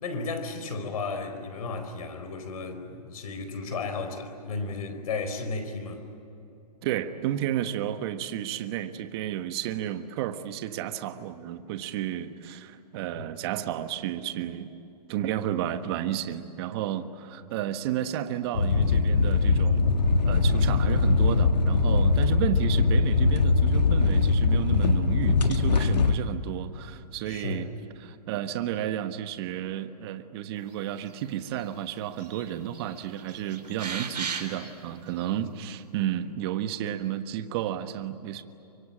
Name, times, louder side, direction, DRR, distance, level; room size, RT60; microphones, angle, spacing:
voice 1, 0.0-6.0 17.4-17.5 27.3-27.7 35.4-35.5, left 3 dB, 60° left, 8 dB, 4.6 m, -34 dB
voice 2, 6.8-14.7 15.1-19.9 20.2-27.7 28.0-38.4, right 11 dB, 40° right, 9 dB, 1.4 m, -32 dB
sound 1, 18.5-26.2, left 4 dB, 85° left, 1.8 m, -22 dB
sound 2, 31.1-31.7 32.0-32.5 32.7-34.7 35.2-35.3, right 6 dB, 85° right, 4.2 m, -36 dB
25.0 x 24.0 x 8.8 m, 2.9 s
hypercardioid pair, 140°, 21 cm